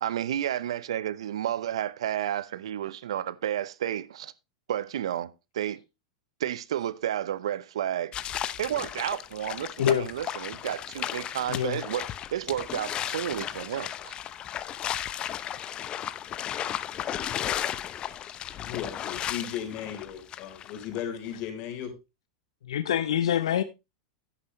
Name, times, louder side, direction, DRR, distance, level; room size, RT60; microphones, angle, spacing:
voice 1, 0.0-4.3 4.7-5.8 6.4-8.1 8.6-14.1, right 11 dB, 80° right, 0.7 m, -31 dB
sound 1, 8.1-21.0, left 10 dB, 35° left, 0.7 m, -35 dB
voice 2, 18.6-22.0, left 9 dB, 50° left, 3.9 m, -36 dB
voice 3, 22.7-23.6, left 10 dB, 80° left, 0.7 m, -25 dB
10.5 x 9.8 x 3.1 m
hypercardioid pair, 110°, 3 cm